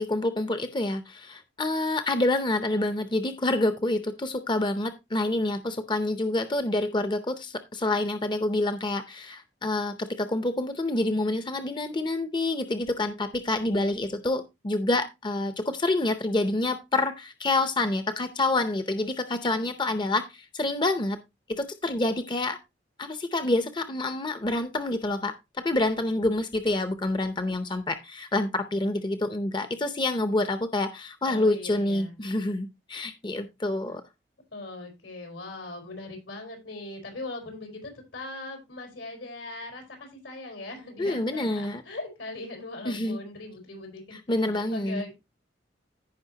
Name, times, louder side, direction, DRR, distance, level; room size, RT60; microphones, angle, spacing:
voice 1, 0.0-21.2 21.5-22.6 23.0-34.0 41.0-41.8 42.9-43.2 44.3-45.0, left 2 dB, 25° left, 9 dB, 0.6 m, -27 dB
voice 2, 31.3-32.2 34.5-45.2, left 2 dB, 85° left, 4 dB, 4.2 m, -40 dB
15.5 x 5.4 x 2.8 m, 0.23 s
head